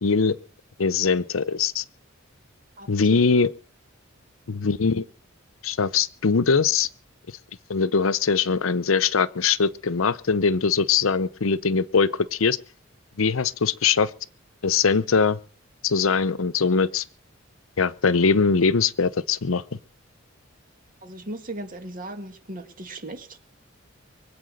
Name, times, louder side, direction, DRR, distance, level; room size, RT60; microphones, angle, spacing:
voice 1, 0.0-0.4 0.8-1.8 2.9-3.5 4.5-5.0 5.6-6.9 7.7-12.6 13.2-14.1 14.6-15.4 15.8-17.0 17.8-19.6, left 5 dB, 75° left, 0.7 m, -21 dB
voice 2, 21.0-23.4, right 1 dB, 45° right, 2.0 m, -37 dB
23.5 x 8.5 x 6.5 m
head